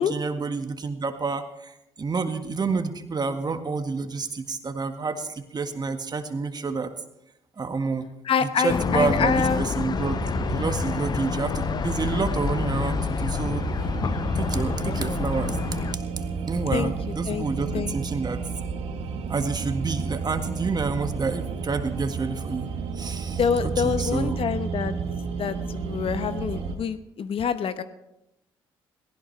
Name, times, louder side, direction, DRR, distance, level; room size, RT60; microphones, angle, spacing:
voice 1, 0.0-6.9 7.6-8.1 8.4-10.2 10.5-13.7 14.4-15.6 15.9-16.0 16.5-18.4 19.3-24.4, right 4 dB, 35° right, 7 dB, 1.7 m, -29 dB
voice 2, 8.2-9.6 16.7-16.9 17.3-17.4 17.7-18.0 23.4-24.9 25.4-27.8, left 6 dB, 55° left, 11 dB, 1.0 m, -26 dB
sound 1, 8.7-16.0, left 7 dB, 40° left, 0.5 m, -28 dB
sound 2, 9.9-26.8, right 5 dB, 65° right, 1.6 m, -32 dB
18.5 x 16.5 x 3.3 m, 0.88 s
hypercardioid pair, 50°, 11 cm